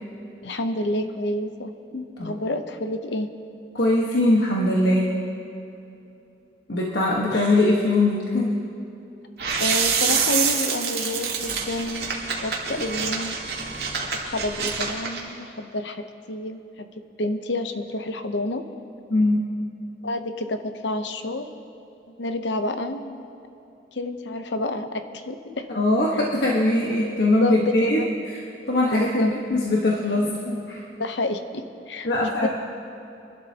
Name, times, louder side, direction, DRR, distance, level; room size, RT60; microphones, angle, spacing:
voice 1, 0.4-1.7 2.2-3.3 9.6-13.4 14.1-16.9 17.2-18.7 20.0-21.5 22.2-23.3 23.9-25.7 27.4-28.1 28.9-29.3 30.9-32.5, left 2 dB, 85° left, 8 dB, 0.8 m, -29 dB
voice 2, 1.9-2.3 3.7-5.1 6.7-8.5 19.1-19.4 25.7-28.0 28.7-30.9 32.0-32.5, left 1 dB, 70° left, -3 dB, 1.4 m, -21 dB
sound 1, 9.4-15.2, right 6 dB, 65° right, 1.9 m, -26 dB
25.5 x 12.0 x 2.9 m, 2.8 s
head